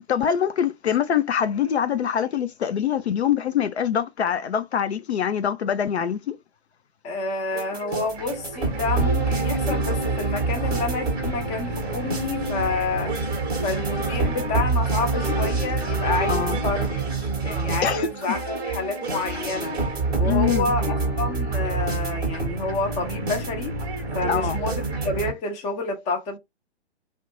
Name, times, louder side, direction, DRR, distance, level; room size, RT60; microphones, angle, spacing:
voice 1, 0.1-6.4 16.3-16.6 17.8-18.1 20.2-20.7 24.3-24.6, left 8 dB, 70° left, 0.5 m, -24 dB
voice 2, 7.0-13.3 13.6-17.1 17.4-19.8 20.2-23.8 24.1-24.7 25.0-26.4, left 3 dB, 20° left, 0.7 m, -29 dB
sound 1, 7.5-25.3, right 3 dB, 10° right, 0.8 m, -26 dB
2.5 x 2.1 x 3.0 m
figure-of-eight pair, 125°, 34 cm